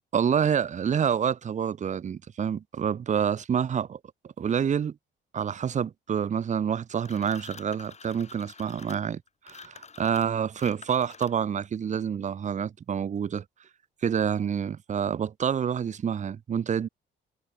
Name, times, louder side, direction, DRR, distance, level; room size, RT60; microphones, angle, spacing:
voice 1, 0.0-4.0 4.4-5.0 5.3-13.4 14.0-16.9, right 8 dB, 35° right, 0.6 m, -28 dB
sound 1, 7.0-11.6, left 5 dB, 35° left, 3.0 m, -47 dB
cardioid pair, 90°, 20 cm